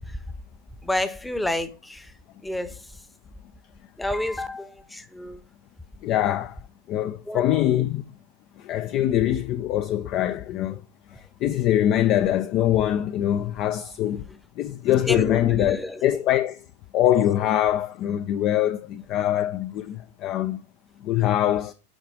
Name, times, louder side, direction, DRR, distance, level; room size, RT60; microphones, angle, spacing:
voice 1, 0.8-2.1 2.4-2.7 4.0-5.4 7.3-7.4 15.1-16.0, left 1 dB, 5° left, 0.9 m, -29 dB
voice 2, 6.0-6.6 6.9-8.0 8.6-10.8 11.4-14.2 14.6-16.6 16.9-20.6 21.0-21.7, left 12 dB, 40° left, 0.4 m, -23 dB
9.0 x 4.8 x 4.7 m
figure-of-eight pair, 90°, 0 cm